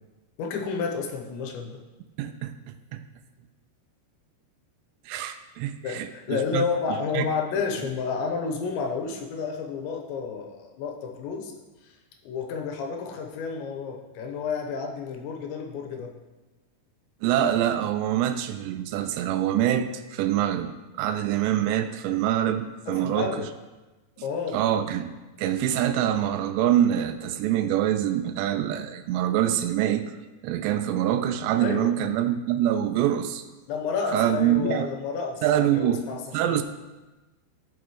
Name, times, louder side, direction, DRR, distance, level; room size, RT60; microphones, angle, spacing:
voice 1, 0.4-1.8 5.8-11.5 11.8-12.0 12.2-16.1 22.9-23.5 24.2-24.6 31.6-32.0 33.7-36.2 36.5-36.6, left 5 dB, 90° left, 2 dB, 3.3 m, -31 dB
voice 2, 2.2-2.5 2.9-3.0 5.1-7.3 17.2-23.4 24.5-25.1 25.4-30.1 30.4-33.4 34.1-34.9 35.4-36.0 36.3-36.6, right 11 dB, 85° right, 9 dB, 2.8 m, -25 dB
15.0 x 6.0 x 3.1 m, 1.1 s
omnidirectional pair, 5.1 m